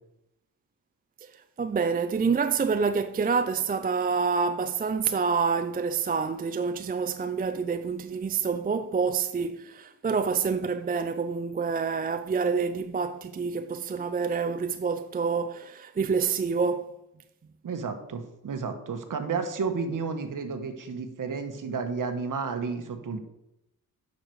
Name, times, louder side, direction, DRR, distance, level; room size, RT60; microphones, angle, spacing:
voice 1, 1.2-16.9, right 5 dB, 25° right, 0.4 m, -27 dB
voice 2, 17.6-23.2, right 5 dB, 55° right, 1.4 m, -32 dB
9.1 x 6.6 x 4.8 m
cardioid pair, 100°, 38 cm